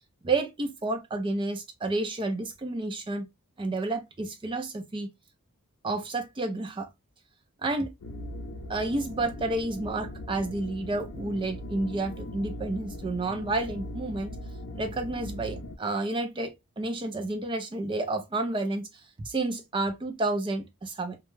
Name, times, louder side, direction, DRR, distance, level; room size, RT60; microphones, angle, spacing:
voice 1, 0.2-3.3 3.6-5.1 5.8-6.9 7.6-7.9 8.7-14.4 14.7-18.9 19.2-21.2, right 2 dB, 20° right, 0.4 m, -30 dB
sound 1, 8.0-15.8, left 1 dB, 80° left, 0.5 m, -39 dB
2.2 x 2.0 x 3.0 m
head